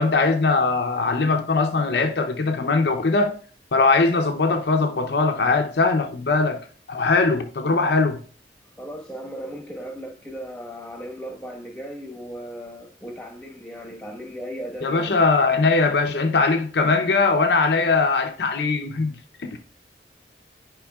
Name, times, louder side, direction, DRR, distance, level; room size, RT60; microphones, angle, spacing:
voice 1, 0.0-3.4 3.7-8.2 14.8-19.6, left 3 dB, 70° left, 0.6 m, -21 dB
voice 2, 8.8-15.2, equal, 5° left, 1.3 m, -36 dB
10.0 x 5.1 x 2.3 m
head